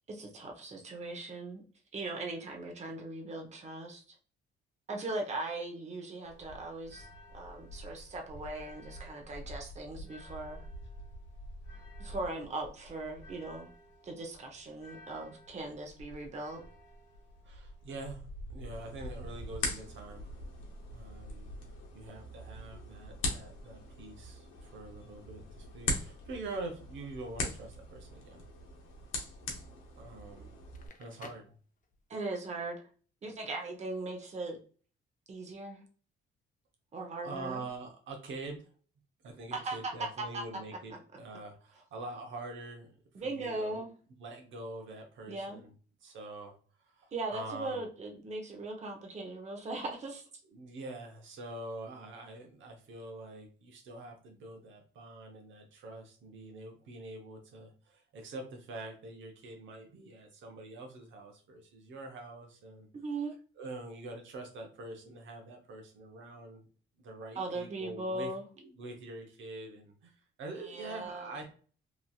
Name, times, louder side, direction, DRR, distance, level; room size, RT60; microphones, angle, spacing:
voice 1, 0.0-1.6 1.9-4.2 4.9-7.1 7.3-10.7 12.0-13.7 14.0-16.6 32.1-32.9 33.2-34.6 35.3-35.8 36.9-37.6 39.5-40.4 43.1-43.9 45.3-45.6 47.1-50.3 62.9-63.4 67.4-68.4 70.6-71.3, right 2 dB, 35° right, 2 dB, 0.8 m, -39 dB
sound 1, 6.2-22.1, equal, 65° left, 1.0 m, -48 dB
voice 2, 17.4-20.3 20.9-21.5 21.9-28.4 29.9-30.5 31.0-31.5 37.2-38.7 39.2-42.9 43.2-43.9 44.2-45.7 46.0-46.6 46.8-47.8 50.5-62.9 63.6-66.6 67.0-68.3 68.6-71.4, right 2 dB, 75° right, 3 dB, 0.8 m, -45 dB
sound 2, 18.7-30.9, left 2 dB, 85° left, 0.8 m, -41 dB
Crackle, 30.7-32.3, left 5 dB, 40° left, 0.6 m, -54 dB
3.0 x 2.6 x 2.3 m, 0.40 s
cardioid pair, 90°, 20 cm